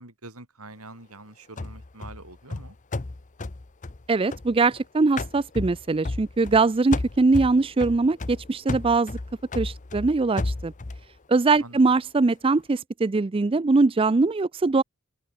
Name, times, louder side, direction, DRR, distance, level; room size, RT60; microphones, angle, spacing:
voice 1, 0.0-2.8 11.6-11.8, right 2 dB, 85° right, 7.5 m, -45 dB
sound 1, 1.6-4.8 5.2-6.6 6.9-11.1, left 2 dB, 35° left, 0.7 m, -33 dB
voice 2, 4.1-9.2 9.5-10.7 11.3-14.8, right 3 dB, 25° right, 0.4 m, -22 dB
head